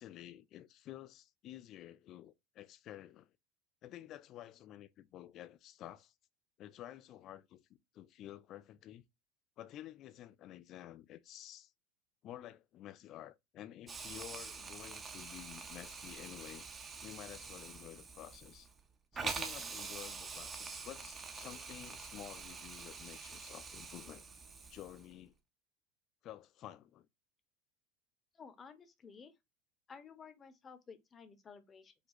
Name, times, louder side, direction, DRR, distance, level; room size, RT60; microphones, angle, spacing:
voice 1, 0.0-3.3 3.8-6.1 6.6-9.0 9.6-11.7 12.2-16.7 17.0-18.7 19.1-24.2 24.7-25.3 26.2-27.1, left 12 dB, 50° left, 0.4 m, -51 dB
Hiss, 13.9-25.1, right 4 dB, 30° right, 0.9 m, -46 dB
voice 2, 28.3-29.3 29.9-31.9, left 6 dB, 30° left, 0.9 m, -54 dB
5.0 x 2.3 x 4.0 m
hypercardioid pair, 75°, 0 cm